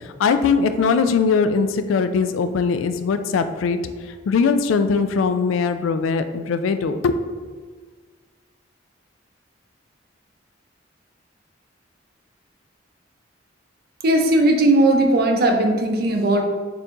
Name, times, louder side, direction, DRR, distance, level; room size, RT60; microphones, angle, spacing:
voice 1, 0.2-3.8 4.3-7.2, left 5 dB, 85° left, 9 dB, 0.3 m, -20 dB
voice 2, 14.0-16.4, right 1 dB, 50° right, 3 dB, 0.5 m, -17 dB
4.4 x 2.6 x 3.6 m, 1.5 s
head